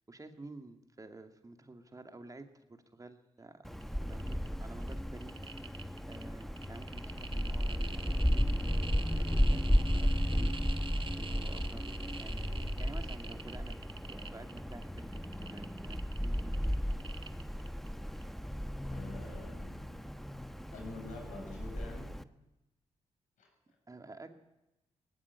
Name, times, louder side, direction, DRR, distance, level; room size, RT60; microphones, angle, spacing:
voice 1, 0.1-5.4 6.1-8.6 9.2-16.8 23.9-24.3, right 2 dB, 30° right, 6 dB, 2.5 m, -51 dB
Wind, 3.6-22.2, equal, ahead, 1.1 m, -34 dB
sound 1, 3.7-3.8 4.1-4.5 4.8-17.9 18.2-18.3, right 4 dB, 45° right, 1.8 m, -46 dB
voice 2, 18.9-20.0 20.7-22.2 23.4-23.5, left 3 dB, 80° left, 2 dB, 7.4 m, -47 dB
18.5 x 15.5 x 9.7 m, 0.94 s
supercardioid pair, 60°, 13 cm